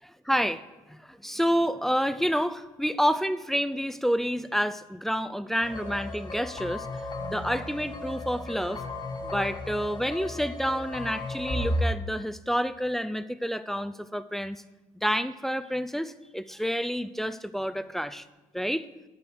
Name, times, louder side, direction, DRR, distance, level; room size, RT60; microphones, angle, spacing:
voice 1, 0.0-0.6 0.9-6.9 7.3-8.8 9.2-14.6 15.0-18.3 18.5-18.9, equal, ahead, 12 dB, 0.4 m, -29 dB
sound 1, 5.6-11.8, left 1 dB, 35° left, 1.5 m, -35 dB
sound 2, 7.2-11.0, right 8 dB, 30° right, 1.3 m, -51 dB
8.1 x 6.8 x 6.0 m, 1.1 s
supercardioid pair, 80°, 14 cm